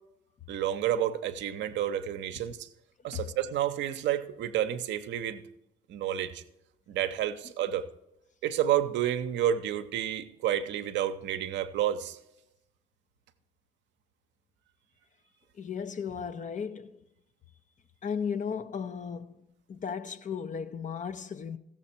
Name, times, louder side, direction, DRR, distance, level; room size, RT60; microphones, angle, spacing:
voice 1, 0.5-2.7 3.0-5.5 5.9-6.4 6.9-7.9 8.4-12.2, right 11 dB, 65° right, 0.7 m, -30 dB
voice 2, 15.5-17.0 18.0-19.4 19.7-21.6, left 6 dB, 40° left, 0.7 m, -35 dB
15.0 x 7.5 x 4.4 m
hypercardioid pair, 55°, 20 cm